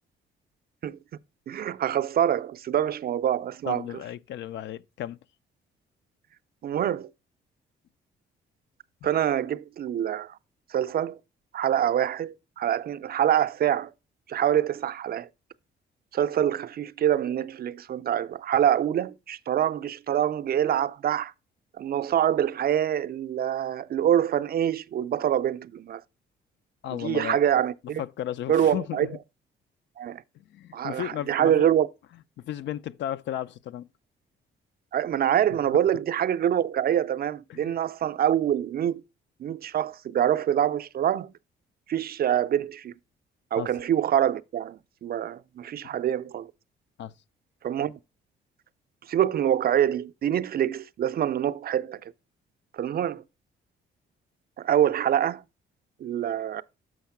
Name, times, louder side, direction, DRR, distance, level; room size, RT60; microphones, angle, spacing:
voice 1, 1.5-3.8 6.6-7.1 9.0-10.4 10.7-11.2 11.5-13.9 14.3-15.3 16.1-21.3 21.8-26.0 26.9-28.0 28.5-29.1 30.0-30.2 30.7-31.9 34.9-39.0 39.4-41.3 41.9-42.9 43.5-46.5 47.6-47.9 49.1-52.1 52.7-53.2 54.6-55.4 56.0-56.6, right 10 dB, 50° right, 0.4 m, -25 dB
voice 2, 3.7-5.2 26.8-27.4 28.0-29.0 30.3-31.6 32.4-33.9 37.5-37.7 43.6-43.7 47.0-47.1, left 11 dB, 65° left, 0.4 m, -34 dB
6.4 x 5.7 x 5.8 m
cardioid pair, 90°, 20 cm